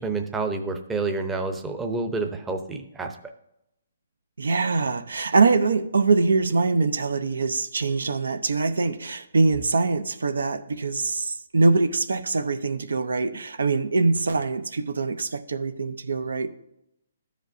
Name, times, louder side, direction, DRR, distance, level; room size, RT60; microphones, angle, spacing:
voice 1, 0.0-3.2, right 3 dB, 10° right, 0.6 m, -28 dB
voice 2, 4.4-16.5, right 3 dB, 85° right, 0.6 m, -23 dB
13.5 x 5.2 x 2.6 m
hypercardioid pair, 155°, 0 cm